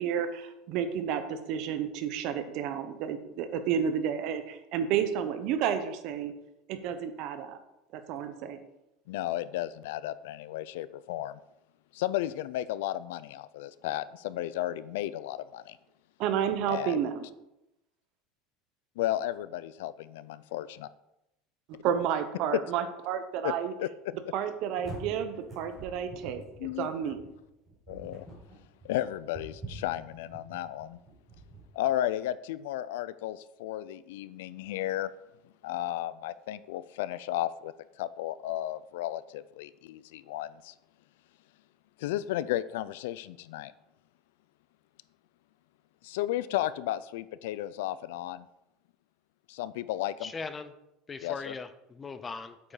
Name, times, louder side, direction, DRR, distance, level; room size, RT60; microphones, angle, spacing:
voice 1, 0.0-6.3 6.7-7.6 7.9-8.6 16.2-17.2 21.8-23.7 24.3-26.4 26.8-27.2, right 8 dB, 45° right, 9 dB, 1.0 m, -31 dB
voice 2, 9.1-11.4 11.9-15.8 16.7-17.0 19.0-20.9 23.4-23.5 23.8-23.9 26.6-26.9 27.9-28.3 28.8-31.0 31.7-35.1 35.6-37.7 38.0-40.7 42.0-43.7 46.0-48.5 49.5-50.3 51.2-51.6, left 13 dB, 85° left, 17 dB, 0.4 m, -33 dB
sound 1, 24.4-31.6, right 2 dB, 10° right, 4.3 m, -46 dB
voice 3, 50.2-50.7 51.1-52.7, left 4 dB, 15° left, 11 dB, 0.5 m, -39 dB
8.4 x 7.7 x 4.9 m, 0.89 s
cardioid pair, 180°, 0 cm